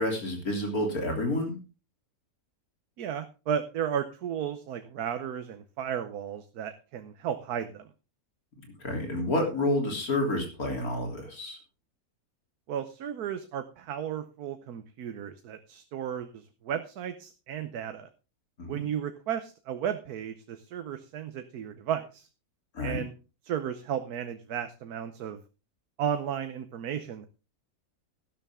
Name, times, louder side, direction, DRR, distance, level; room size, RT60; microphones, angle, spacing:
voice 1, 0.0-1.6 8.8-11.6 18.6-18.8 22.7-23.0, left 1 dB, 75° left, 2 dB, 3.8 m, -29 dB
voice 2, 3.0-7.9 12.7-18.1 18.7-22.3 22.8-23.1 23.4-25.4 26.0-27.3, right 9 dB, 90° right, 8 dB, 1.4 m, -34 dB
12.5 x 11.5 x 3.6 m, 0.33 s
omnidirectional pair, 1.6 m